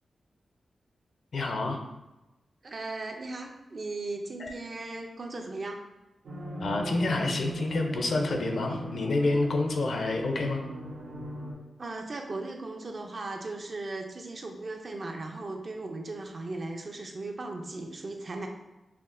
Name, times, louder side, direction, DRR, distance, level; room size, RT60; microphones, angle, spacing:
voice 1, 1.3-1.8 4.4-4.5 6.6-10.6, left 2 dB, 65° left, 3 dB, 0.5 m, -28 dB
voice 2, 2.6-5.8 11.8-18.5, right 2 dB, 40° right, 3 dB, 0.4 m, -37 dB
sound 1, 6.2-11.5, right 1 dB, 85° right, 0.9 m, -38 dB
5.8 x 2.1 x 2.5 m, 1.0 s
wide cardioid pair, 125°, 0 cm